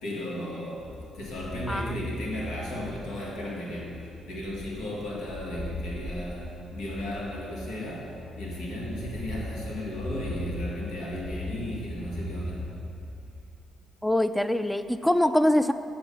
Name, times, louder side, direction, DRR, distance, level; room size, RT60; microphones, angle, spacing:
voice 1, 0.0-12.7, left 1 dB, 85° left, -4 dB, 1.7 m, -35 dB
sound 1, 0.8-13.6, left 1 dB, 40° left, 1.5 m, -38 dB
voice 2, 14.0-15.7, left 1 dB, 5° left, 11 dB, 0.3 m, -23 dB
7.2 x 5.1 x 6.9 m, 2.7 s
cardioid pair, 90°, 0 cm